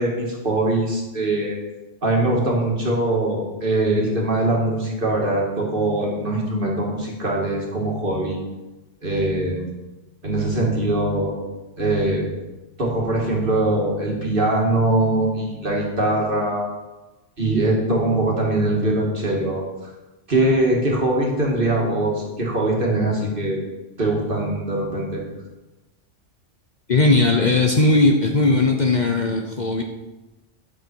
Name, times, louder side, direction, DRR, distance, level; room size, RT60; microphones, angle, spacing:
voice 1, 0.0-1.5 2.0-8.4 9.0-9.7 10.2-11.3 11.8-12.3 12.8-16.7 17.4-19.9 20.3-23.6 24.0-25.2, right 2 dB, 45° right, -2 dB, 2.2 m, -22 dB
voice 2, 26.9-29.8, left 2 dB, 40° left, 2 dB, 0.9 m, -18 dB
11.5 x 7.0 x 4.5 m, 1.1 s
omnidirectional pair, 1.3 m